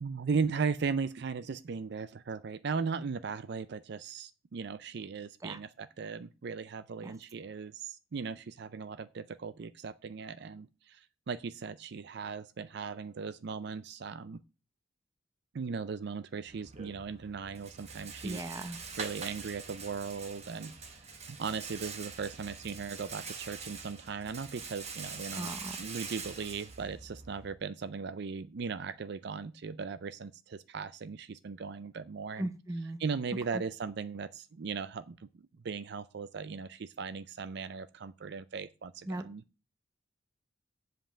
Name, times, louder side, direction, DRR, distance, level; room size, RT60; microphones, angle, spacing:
voice 1, 0.0-14.4 15.5-20.7 21.3-32.5 33.0-39.4, right 5 dB, 55° right, 0.4 m, -38 dB
Rattle, 16.5-27.5, right 5 dB, 35° right, 1.2 m, -44 dB
voice 2, 18.2-18.8 25.3-25.8 32.4-33.0 33.5-33.6 39.1-39.3, right 1 dB, 15° right, 0.7 m, -37 dB
7.8 x 5.2 x 7.2 m
head